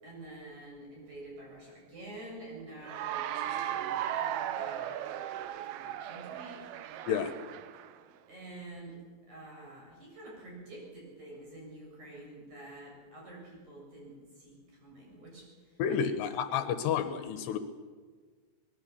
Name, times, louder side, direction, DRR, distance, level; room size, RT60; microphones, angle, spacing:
voice 1, 0.0-4.9 5.7-6.7 7.3-7.4 8.3-9.0 9.3-16.1 16.5-16.6, right 1 dB, 40° right, -2 dB, 8.8 m, -48 dB
Cheering / Applause, 2.8-8.0, right 11 dB, 75° right, 2.5 m, -36 dB
voice 2, 15.8-17.6, left 7 dB, 75° left, 10 dB, 3.0 m, -30 dB
24.0 x 20.0 x 7.1 m, 1.5 s
omnidirectional pair, 5.0 m